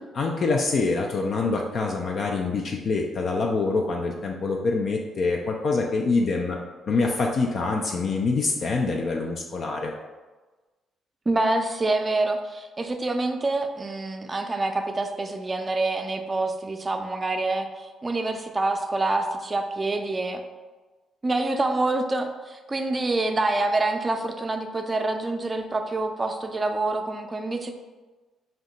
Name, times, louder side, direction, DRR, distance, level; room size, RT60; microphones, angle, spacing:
voice 1, 0.2-6.6 6.9-9.9, left 3 dB, 55° left, 1 dB, 0.3 m, -25 dB
voice 2, 11.3-20.4 21.2-27.7, right 2 dB, 30° right, 5 dB, 0.4 m, -26 dB
2.7 x 2.2 x 3.8 m, 1.2 s
hypercardioid pair, 50°, 0 cm